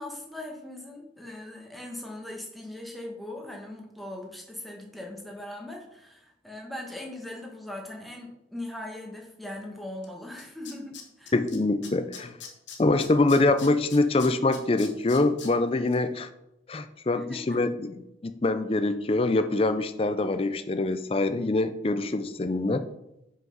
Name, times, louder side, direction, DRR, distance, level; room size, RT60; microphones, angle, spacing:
voice 1, 0.0-11.3 17.1-17.6, left 1 dB, ahead, -1 dB, 1.3 m, -40 dB
Tools, 10.0-10.1 10.4-11.6 11.8-15.5 15.9-16.0, left 7 dB, 80° left, 1.4 m, -42 dB
voice 2, 11.3-12.4 12.8-16.3 16.7-17.9 18.2-22.8, left 2 dB, 30° left, 11 dB, 0.5 m, -24 dB
5.8 x 5.7 x 5.4 m, 0.86 s
head